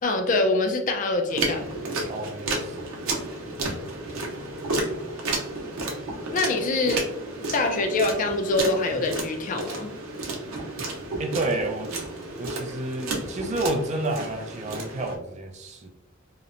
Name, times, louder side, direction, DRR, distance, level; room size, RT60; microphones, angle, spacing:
voice 1, 0.0-1.8 6.3-7.0 7.5-9.9, left 2 dB, 40° left, 5 dB, 0.3 m, -24 dB
sound 1, 1.3-15.2, right 2 dB, 90° right, 0.6 m, -32 dB
voice 2, 2.1-3.0 11.2-11.9 12.4-15.9, right 2 dB, 35° right, 4 dB, 0.3 m, -30 dB
2.8 x 2.0 x 2.5 m, 0.86 s
head